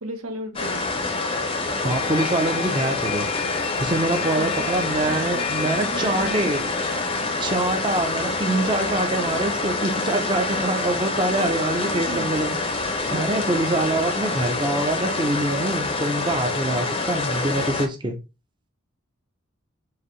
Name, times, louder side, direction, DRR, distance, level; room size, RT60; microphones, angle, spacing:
voice 1, 0.0-0.9 4.2-5.4 5.7-6.7 11.3-12.4, right 1 dB, 85° right, 0.9 m, -36 dB
sound 1, 0.6-17.9, left 3 dB, 25° left, 0.6 m, -26 dB
voice 2, 1.8-3.3 3.8-6.6 7.4-18.2, right 2 dB, 20° right, 0.6 m, -25 dB
sound 2, 1.9-7.3, left 10 dB, 75° left, 0.4 m, -34 dB
4.8 x 2.7 x 3.1 m
head